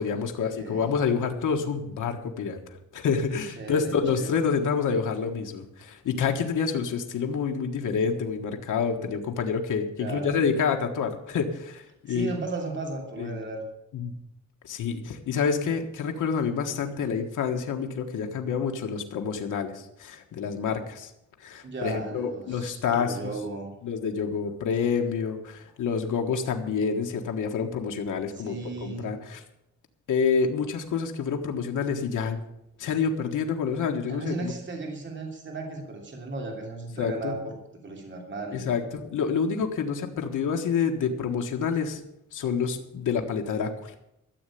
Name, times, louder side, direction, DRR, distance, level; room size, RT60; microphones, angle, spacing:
voice 1, 0.0-2.6 2.9-12.3 13.2-13.4 13.9-14.1 14.6-21.1 21.4-23.3 23.8-28.6 28.8-29.4 30.1-32.4 32.8-34.5 37.0-37.3 38.5-42.0 42.3-43.9, left 6 dB, 85° left, 4 dB, 1.5 m, -28 dB
voice 2, 0.5-0.9 3.6-4.4 10.0-10.4 12.1-13.6 21.6-23.7 28.3-29.1 34.0-37.6 37.8-38.7, right 3 dB, 40° right, 1 dB, 3.0 m, -35 dB
13.5 x 7.7 x 8.5 m, 0.83 s
wide cardioid pair, 125°, 30 cm